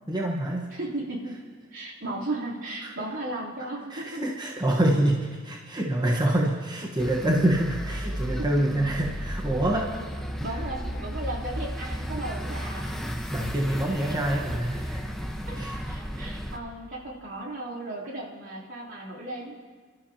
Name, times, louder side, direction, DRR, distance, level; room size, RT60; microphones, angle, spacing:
voice 1, 0.1-0.7 2.8-2.9 3.9-9.9 13.3-15.1 15.5-15.8, right 1 dB, 20° right, -2 dB, 1.2 m, -26 dB
voice 2, 0.7-1.4 1.7-4.4 6.2-6.3 8.4-8.8 9.7-10.0 10.4-13.0 13.8-14.3 15.5-15.6 15.9-19.6, right 2 dB, 70° right, -5 dB, 3.3 m, -36 dB
sound 1, 7.0-16.6, equal, ahead, 1.0 m, -34 dB
29.5 x 12.5 x 2.9 m, 1.5 s
head